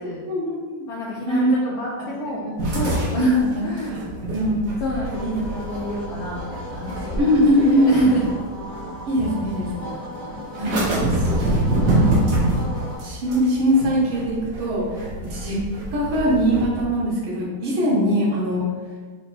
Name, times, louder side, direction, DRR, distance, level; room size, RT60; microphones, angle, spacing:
voice 1, 0.2-0.7 1.3-1.5 2.4-2.6 3.0-4.8 5.2-5.4 7.2-8.1 9.1-9.9 10.6-11.5 11.9-12.7 13.0-14.9 15.2-15.6 15.9-18.7, equal, 90° right, -4 dB, 1.9 m, -22 dB
voice 2, 0.9-1.5 1.7-2.5 2.7-4.0 4.8-7.3 7.7-8.2 15.1-15.3, left 2 dB, 75° left, -3 dB, 0.8 m, -30 dB
sound 1, 2.6-8.8 9.2-9.8 10.6-16.8, right 1 dB, 55° right, 1.0 m, -26 dB
sound 2, 5.0-13.0, left 1 dB, 10° right, 0.8 m, -35 dB
4.3 x 2.2 x 4.0 m, 1.5 s
omnidirectional pair, 2.1 m